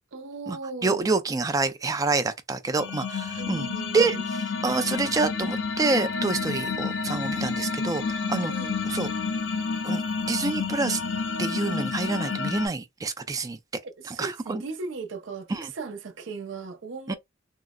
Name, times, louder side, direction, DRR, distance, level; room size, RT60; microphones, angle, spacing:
voice 1, 0.1-1.1 3.4-4.3 8.5-8.8 13.8-17.2, right 4 dB, 70° right, 0.6 m, -37 dB
voice 2, 0.8-3.7 3.9-4.2 4.6-8.5 8.9-9.1 9.8-11.0 11.4-13.6 14.1-14.6 15.5-15.7 17.1-17.2, right 3 dB, 20° right, 0.4 m, -27 dB
sound 1, 2.8-12.7, left 4 dB, 70° left, 0.5 m, -30 dB
3.7 x 2.0 x 2.2 m
head